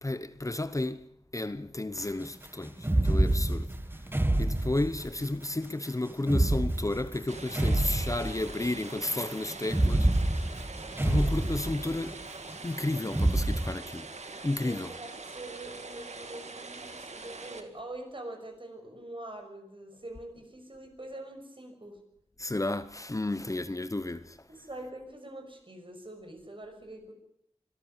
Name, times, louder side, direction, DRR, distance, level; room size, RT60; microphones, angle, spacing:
voice 1, 0.0-3.7 3.9-10.5 11.0-12.2 12.6-14.1 14.4-14.9 22.4-24.5, left 2 dB, 30° left, 0.9 m, -32 dB
sound 1, 2.8-5.3 6.2-8.8 9.6-12.2 13.1-13.7, right 1 dB, 20° right, 1.5 m, -27 dB
sound 2, 7.3-17.6, right 3 dB, 85° right, 2.0 m, -43 dB
voice 2, 14.6-22.0 24.5-27.1, right 1 dB, 50° right, 6.2 m, -44 dB
24.5 x 13.5 x 9.0 m
wide cardioid pair, 65°, 11 cm